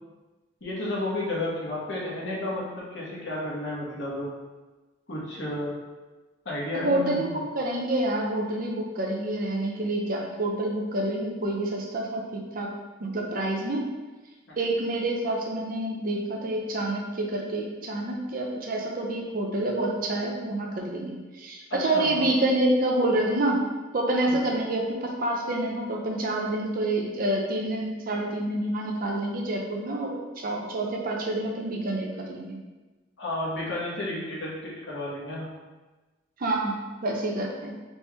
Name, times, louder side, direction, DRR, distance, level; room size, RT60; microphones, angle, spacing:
voice 1, 0.6-4.3 5.1-5.7 6.4-7.4 14.5-14.6 21.7-22.3 24.3-24.4 33.2-35.5, left 1 dB, 65° left, -5 dB, 1.2 m, -32 dB
voice 2, 6.7-12.7 13.0-13.9 14.6-23.7 23.9-32.6 36.4-37.7, right 1 dB, 50° right, 0 dB, 0.6 m, -28 dB
4.2 x 3.0 x 3.4 m, 1.2 s
head